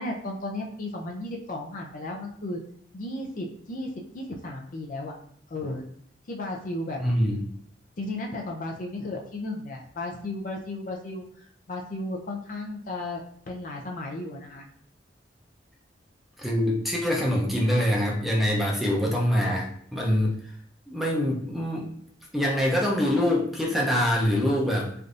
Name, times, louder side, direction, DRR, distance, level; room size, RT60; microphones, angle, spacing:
voice 1, 0.0-2.6 2.9-5.1 5.5-5.9 6.3-7.0 8.0-11.2 11.7-13.2 13.5-14.6 19.0-19.1, left 2 dB, 45° left, 1 dB, 0.5 m, -34 dB
voice 2, 7.0-7.5 16.4-20.4 20.9-21.9 22.3-24.9, equal, ahead, -2 dB, 0.6 m, -24 dB
3.3 x 2.6 x 2.5 m, 0.64 s
head